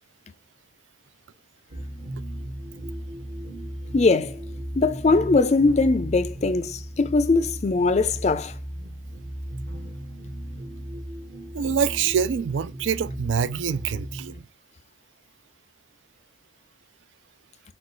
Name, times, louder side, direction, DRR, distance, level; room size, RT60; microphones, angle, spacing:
sound 1, 1.7-14.4, equal, 50° right, 1.1 m, -36 dB
voice 1, 3.9-4.4 4.8-8.5, left 3 dB, 35° left, 0.4 m, -21 dB
voice 2, 11.5-14.4, right 7 dB, 80° right, 0.4 m, -25 dB
5.9 x 2.3 x 3.1 m
head